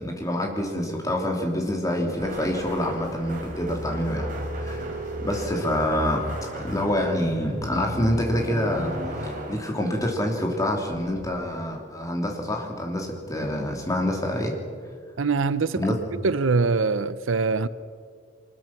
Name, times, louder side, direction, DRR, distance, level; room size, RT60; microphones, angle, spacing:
voice 1, 0.0-4.3 4.6-4.8 5.2-8.9 9.2-14.5 15.8-15.9, left 1 dB, 15° left, 3.3 m, -26 dB
sound 1, 2.2-10.5 10.9-11.4, right 1 dB, 45° right, 4.1 m, -34 dB
voice 2, 15.2-15.8 16.2-17.7, right 4 dB, 90° right, 0.7 m, -23 dB
24.0 x 21.0 x 6.0 m
head